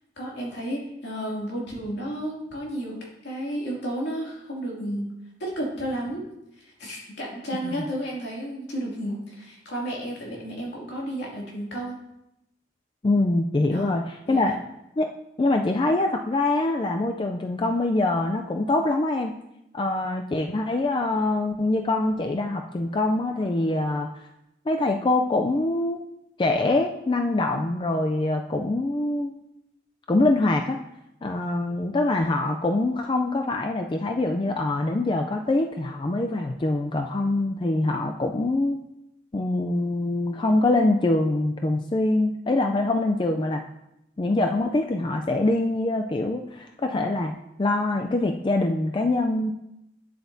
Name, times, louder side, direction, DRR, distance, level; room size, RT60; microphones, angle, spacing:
voice 1, 0.2-5.1 5.4-6.2 6.6-12.0 13.6-14.0 14.3-14.6, right 1 dB, 70° left, -4 dB, 2.5 m, -32 dB
voice 2, 13.0-14.5 15.0-15.1 15.4-19.4 19.7-24.1 24.7-26.0 26.4-29.3 30.1-30.8 31.2-38.8 39.3-43.6 44.2-47.3 47.6-49.5, left 2 dB, 25° left, 4 dB, 0.4 m, -24 dB
9.2 x 7.9 x 2.7 m, 0.86 s
head